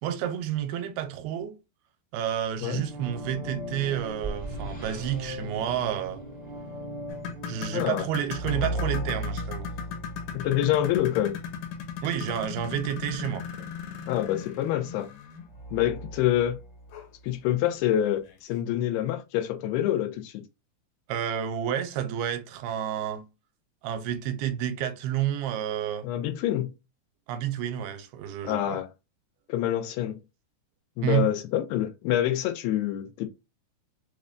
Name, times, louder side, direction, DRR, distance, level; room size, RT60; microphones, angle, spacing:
voice 1, 0.0-1.5 2.1-6.2 7.5-9.7 12.0-13.5 21.1-23.2 23.8-26.1 27.3-28.8 31.0-31.3, right 10 dB, 85° right, 2.5 m, -30 dB
sound 1, 2.4-12.4 15.5-17.3, right 1 dB, 25° left, 0.6 m, -37 dB
sound 2, 7.1-15.5 16.9-17.1 17.5-17.6 18.3-18.4, left 7 dB, 75° left, 2.2 m, -38 dB
voice 2, 7.7-8.1 10.3-11.4 14.1-15.1 15.7-16.6 17.2-20.4 26.0-26.7 28.4-28.9 29.5-30.2 31.0-33.3, left 12 dB, 90° left, 2.6 m, -26 dB
6.4 x 2.2 x 2.4 m
omnidirectional pair, 4.5 m